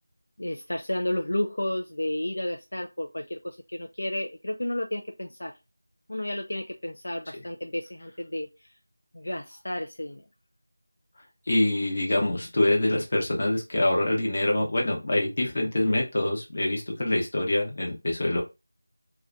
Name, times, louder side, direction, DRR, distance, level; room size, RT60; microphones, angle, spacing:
voice 1, 0.4-5.5 6.1-8.5 9.1-10.2, left 1 dB, 75° left, 3 dB, 0.4 m, -32 dB
voice 2, 11.5-18.4, left 1 dB, 45° left, 1 dB, 0.9 m, -25 dB
2.4 x 2.2 x 2.5 m, 0.24 s
figure-of-eight pair, 170°, 0 cm